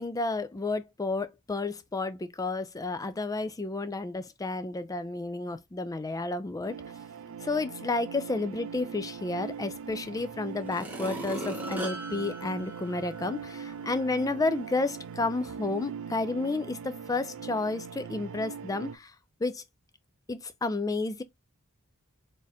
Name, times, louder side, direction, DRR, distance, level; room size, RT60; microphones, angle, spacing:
voice 1, 0.0-6.8 7.4-19.1 19.4-19.6 20.3-21.2, left 3 dB, 15° left, 0.4 m, -31 dB
sound 1, 6.6-19.0, right 6 dB, 60° right, 0.5 m, -41 dB
sound 2, 9.9-10.0 10.6-13.4 13.9-14.0, equal, 10° right, 1.1 m, -38 dB
4.1 x 3.6 x 2.6 m
head